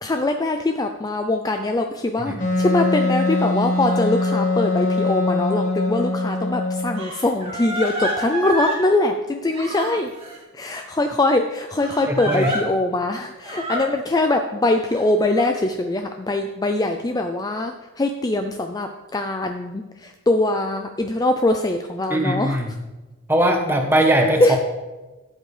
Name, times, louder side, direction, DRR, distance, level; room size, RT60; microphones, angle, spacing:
voice 1, 0.0-10.1 10.5-22.6 24.4-24.6, left 2 dB, 20° left, 5 dB, 0.4 m, -22 dB
Wind instrument woodwind instrument, 2.4-7.0, left 2 dB, 35° left, 1.2 m, -22 dB
Crying sobbing, 6.0-6.1 7.0-8.8 9.5-10.4 11.8-12.6 13.4-13.8 14.9-15.5, right 1 dB, 25° right, 2.3 m, -28 dB
voice 2, 12.1-12.5 22.1-22.7 23.3-24.6, right 1 dB, 10° right, 3 dB, 1.1 m, -20 dB
13.5 x 7.7 x 3.3 m, 1.2 s
head